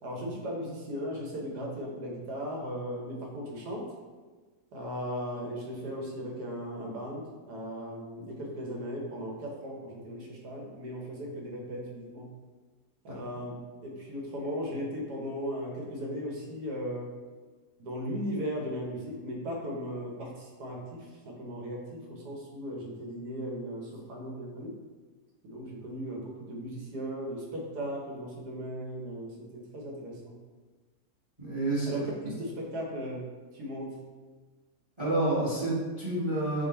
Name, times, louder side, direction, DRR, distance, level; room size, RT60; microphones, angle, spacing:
voice 1, 0.0-3.8 4.7-12.3 13.0-17.1 17.8-24.7 25.4-30.3 31.9-33.3 33.5-34.0, equal, 75° right, -1 dB, 1.4 m, -37 dB
voice 2, 31.4-32.0 35.0-36.7, right 2 dB, 20° right, -8 dB, 1.2 m, -29 dB
5.1 x 2.4 x 4.2 m, 1.4 s
omnidirectional pair, 1.7 m